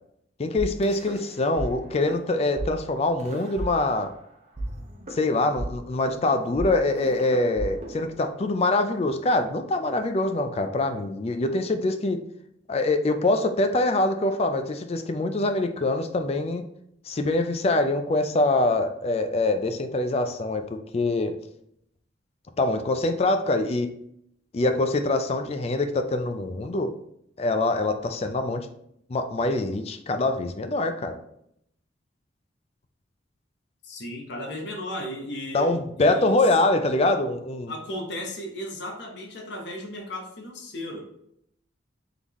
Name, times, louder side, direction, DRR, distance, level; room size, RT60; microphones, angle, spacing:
voice 1, 0.4-4.1 5.1-12.2 12.7-16.6 17.0-21.3 22.6-23.9 24.5-26.9 27.4-28.7 29.1-31.2 35.5-37.7, left 2 dB, 35° left, 7 dB, 0.4 m, -24 dB
sound 1, 0.6-1.7 1.9-2.2 2.6-2.7 3.2-4.2 4.6-8.6, right 1 dB, 35° right, 0.7 m, -35 dB
voice 2, 33.8-36.4 37.7-41.2, equal, 65° left, 1 dB, 0.8 m, -35 dB
3.9 x 3.6 x 3.0 m, 0.73 s
head